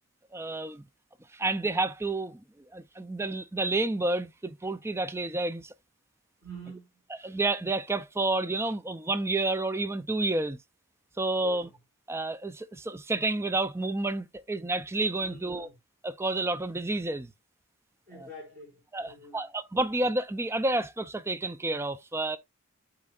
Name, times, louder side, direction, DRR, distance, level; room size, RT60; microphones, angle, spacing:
voice 1, 0.3-0.8 1.3-2.4 2.7-5.7 7.2-10.6 11.2-11.7 12.1-15.7 16.0-17.3 18.9-22.4, right 2 dB, 10° right, 0.4 m, -30 dB
voice 2, 6.4-7.0 11.4-11.8 15.2-15.7 18.1-19.5 19.7-19.8, right 1 dB, 45° right, 5.3 m, -47 dB
12.0 x 4.4 x 2.4 m
head